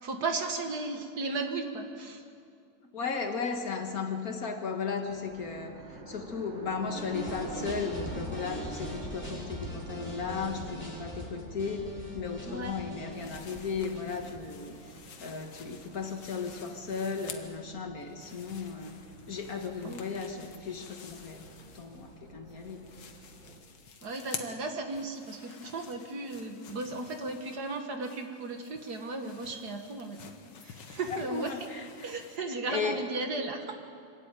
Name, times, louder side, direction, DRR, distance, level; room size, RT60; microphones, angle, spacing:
voice 1, 0.0-2.2 12.5-12.8 19.8-20.0 24.0-30.3 30.6-31.6 32.0-33.8, right 3 dB, 60° right, 5 dB, 2.1 m, -35 dB
voice 2, 2.9-15.0 15.2-18.9 19.3-21.4 21.7-22.9 31.1-32.1 32.7-33.1, left 5 dB, 50° left, 5 dB, 1.8 m, -35 dB
sound 1, 5.1-23.6, right 2 dB, 80° right, 2.8 m, -48 dB
sound 2, 6.9-15.0, equal, 5° left, 3.9 m, -41 dB
sound 3, 13.1-17.7 18.0-22.2 22.5-32.4, left 6 dB, 70° left, 2.0 m, -50 dB
25.0 x 13.0 x 9.2 m, 2.4 s
omnidirectional pair, 2.1 m